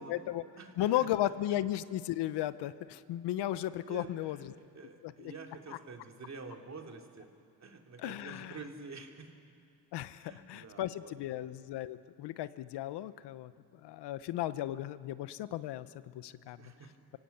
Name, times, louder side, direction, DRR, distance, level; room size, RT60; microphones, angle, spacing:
voice 1, 0.0-0.4 0.8-4.4 5.0-5.3 8.0-8.5 9.9-13.5 13.8-15.9 16.1-16.6, left 13 dB, 80° left, 15 dB, 0.9 m, -35 dB
voice 2, 0.6-1.1 1.5-1.6 3.9-7.3 7.6-9.3 10.2-11.4 16.5-16.9, right 4 dB, 40° right, 2 dB, 3.1 m, -48 dB
25.5 x 16.5 x 8.6 m, 2.4 s
cardioid pair, 85°, 40 cm